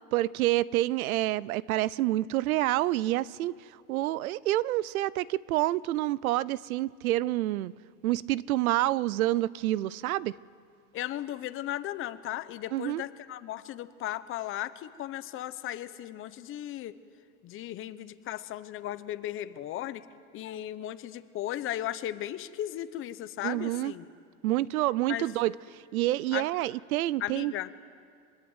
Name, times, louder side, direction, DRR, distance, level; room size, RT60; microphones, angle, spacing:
voice 1, 0.1-3.5 3.9-7.7 8.0-10.4 12.7-13.0 23.4-23.9 24.4-25.5 25.9-27.5, right 16 dB, 75° right, 0.7 m, -28 dB
voice 2, 10.9-16.9 17.4-20.1 20.3-24.1 25.1-25.2 26.3-26.5 27.2-27.7, left 13 dB, 30° left, 0.9 m, -36 dB
25.0 x 21.0 x 8.1 m
supercardioid pair, 140°, 44 cm